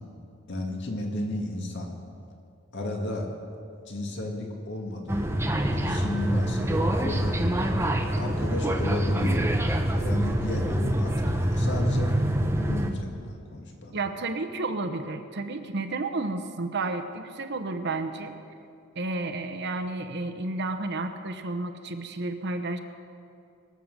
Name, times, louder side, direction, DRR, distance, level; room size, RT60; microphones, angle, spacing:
voice 1, 0.5-1.9 2.7-3.3 3.9-5.3 5.7-7.5 8.2-9.6 9.9-12.3 12.6-14.0, left 1 dB, 55° left, 1 dB, 2.1 m, -32 dB
sound 1, 5.1-12.9, right 1 dB, 10° right, 0.8 m, -26 dB
voice 2, 13.9-18.3 18.9-22.8, right 2 dB, 55° right, 8 dB, 0.9 m, -31 dB
23.0 x 7.7 x 6.8 m, 2.5 s
head